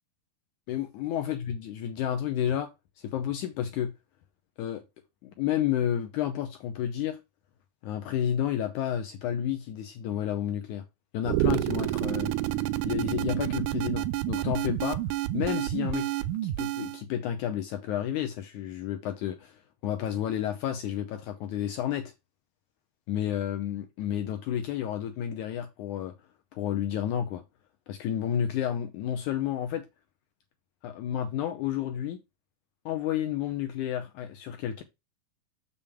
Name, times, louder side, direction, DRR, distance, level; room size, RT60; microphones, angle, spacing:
voice 1, 0.7-2.7 3.0-3.9 4.6-4.8 5.2-7.2 7.8-10.8 11.1-12.3 12.9-15.0 15.3-16.1 16.4-22.1 23.1-26.1 26.5-27.4 27.9-29.9 30.8-32.2 32.9-34.8, left 10 dB, 75° left, 2.0 m, -31 dB
sound 1, 11.2-17.0, right 15 dB, 80° right, 1.8 m, -29 dB
7.0 x 6.8 x 3.5 m
omnidirectional pair, 3.9 m